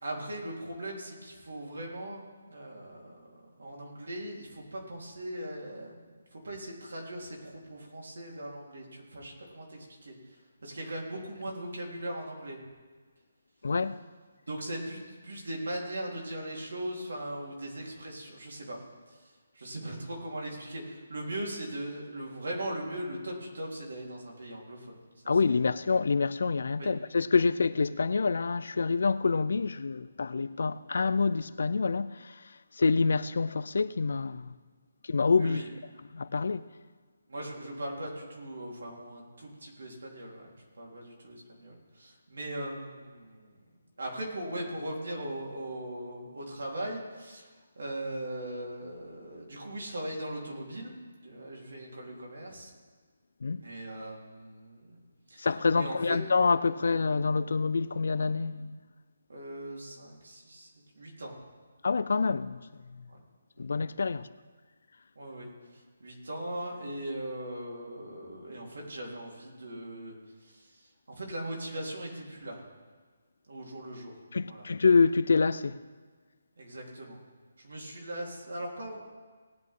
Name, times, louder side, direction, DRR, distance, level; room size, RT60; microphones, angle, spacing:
voice 1, 0.0-2.2 2.5-5.9 6.3-12.6 14.5-18.8 19.1-25.3 26.8-26.9 35.4-35.7 37.3-43.6 44.0-47.5 47.8-50.9 51.2-52.7 53.6-55.0 55.3-55.5 55.7-56.2 59.3-60.7 61.0-61.4 63.1-63.2 63.6-63.7 65.2-70.2 70.4-72.7 73.5-74.1 74.5-74.7 76.6-77.2 77.6-79.1, right 1 dB, 85° right, 4.0 m, -39 dB
voice 2, 13.6-14.0 25.3-32.3 32.8-34.5 35.1-35.6 36.1-36.7 53.4-53.6 55.4-58.8 61.8-62.6 63.6-64.3 74.3-75.8, left 4 dB, 65° left, 0.5 m, -27 dB
19.0 x 9.5 x 3.8 m
hypercardioid pair, 175°, 0 cm